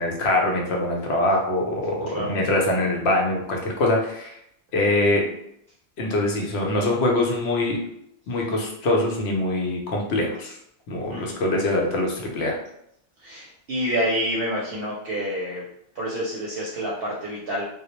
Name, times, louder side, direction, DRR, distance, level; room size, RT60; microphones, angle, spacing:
voice 1, 0.0-4.3 4.7-5.2 6.0-7.8 8.3-10.6 10.9-12.6, left 2 dB, 70° left, 0 dB, 0.8 m, -23 dB
voice 2, 13.2-15.6 16.0-17.6, equal, 65° right, -5 dB, 0.7 m, -28 dB
2.1 x 2.0 x 2.8 m, 0.74 s
omnidirectional pair, 1.2 m